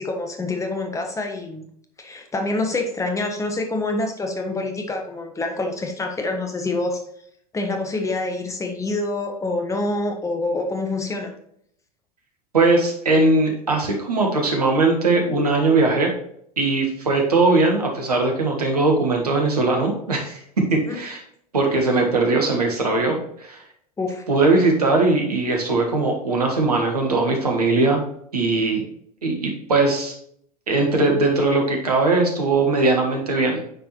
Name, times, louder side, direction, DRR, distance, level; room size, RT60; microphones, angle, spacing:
voice 1, 0.0-1.7 2.0-7.0 7.5-11.3 20.9-21.0 24.0-24.2, left 2 dB, 15° left, 3 dB, 1.3 m, -26 dB
voice 2, 12.5-16.1 16.6-20.4 20.7-21.2 21.5-23.6 24.3-28.0 28.3-28.9 29.2-30.1 30.7-33.6, right 3 dB, 75° right, 1 dB, 1.6 m, -20 dB
9.6 x 4.6 x 3.1 m, 0.69 s
figure-of-eight pair, 80°, 20 cm